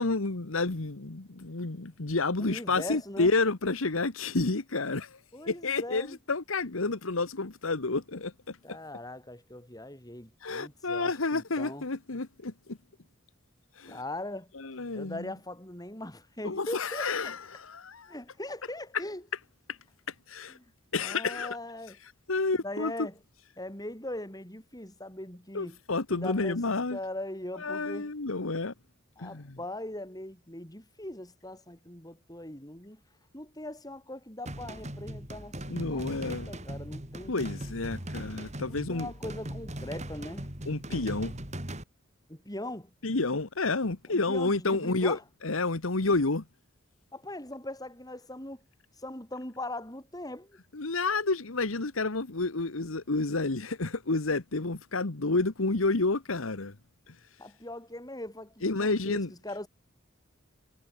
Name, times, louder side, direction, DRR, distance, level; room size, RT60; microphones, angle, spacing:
voice 1, 0.0-5.2 5.5-8.6 10.4-12.8 13.8-14.0 14.5-15.3 16.4-18.1 19.7-19.8 20.3-20.6 20.9-21.6 22.3-23.1 25.5-27.0 27.5-28.7 29.2-29.6 35.7-36.5 37.3-39.1 40.7-41.3 43.0-46.4 50.7-56.7 57.1-57.2 58.6-59.3, left 3 dB, 85° left, 1.4 m, -30 dB
voice 2, 2.4-3.3 5.3-6.2 8.6-11.8 13.9-14.5 14.9-17.1 18.1-19.2 20.5-20.7 21.0-22.0 22.6-23.2 23.6-25.8 26.1-28.1 29.2-33.0 33.3-37.4 38.7-40.5 42.3-42.9 44.1-45.2 47.1-48.6 49.0-50.6 57.4-59.7, left 1 dB, 20° left, 6.7 m, -40 dB
sound 1, 34.5-41.8, right 1 dB, 35° right, 4.8 m, -39 dB
head